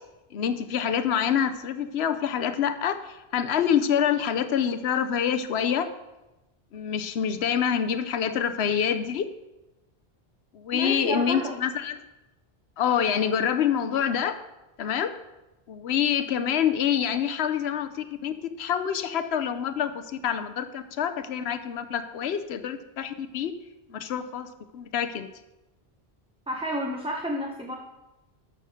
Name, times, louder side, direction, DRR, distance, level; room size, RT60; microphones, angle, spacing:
voice 1, 0.3-5.9 6.7-9.3 10.5-12.0 12.8-14.4 14.8-15.1 15.7-23.5 23.9-25.3, left 8 dB, 85° left, 9 dB, 1.0 m, -26 dB
voice 2, 10.7-11.5 26.5-27.8, equal, 5° right, 0 dB, 1.0 m, -30 dB
12.0 x 7.0 x 6.3 m, 1.0 s
omnidirectional pair, 1.1 m